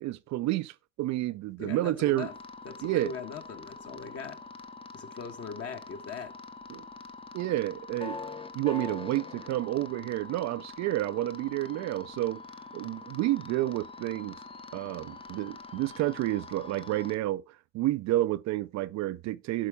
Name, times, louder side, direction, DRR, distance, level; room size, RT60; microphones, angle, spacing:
voice 1, 0.0-2.3 2.8-3.1 6.7-6.9 7.3-8.2 8.5-12.4 12.7-14.4 14.7-19.7, right 16 dB, 55° right, 0.4 m, -30 dB
voice 2, 1.6-2.3 2.6-4.4 4.9-6.3, left 6 dB, 45° left, 1.4 m, -40 dB
sound 1, 2.2-17.2, left 3 dB, 15° left, 0.7 m, -44 dB
11.0 x 4.0 x 3.5 m
hypercardioid pair, 70°, 34 cm